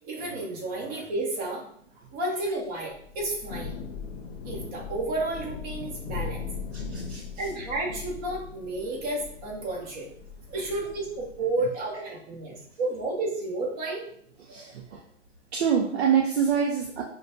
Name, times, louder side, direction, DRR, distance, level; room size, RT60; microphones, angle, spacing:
voice 1, 0.0-1.7 2.1-3.8 4.4-6.4 7.4-10.1 10.5-14.0, right 2 dB, 30° right, -3 dB, 1.0 m, -31 dB
Thunder / Rain, 3.0-11.5, left 5 dB, 75° left, 0.7 m, -39 dB
voice 2, 6.7-7.5 14.4-15.0 15.5-17.0, right 7 dB, 55° right, 0 dB, 0.6 m, -26 dB
5.1 x 2.2 x 2.6 m, 0.63 s
hypercardioid pair, 150°, 37 cm